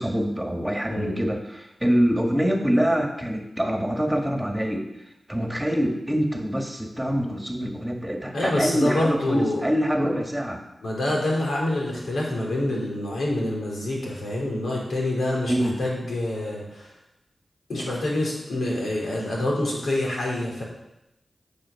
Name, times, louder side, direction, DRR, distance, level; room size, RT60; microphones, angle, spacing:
voice 1, 0.0-4.9 5.3-10.6 15.5-15.8, equal, 10° right, 3 dB, 1.8 m, -25 dB
voice 2, 8.3-9.6 10.8-16.9 17.7-20.6, left 1 dB, 85° left, -3 dB, 3.8 m, -26 dB
10.0 x 7.3 x 5.9 m, 0.88 s
cardioid pair, 50°, 0 cm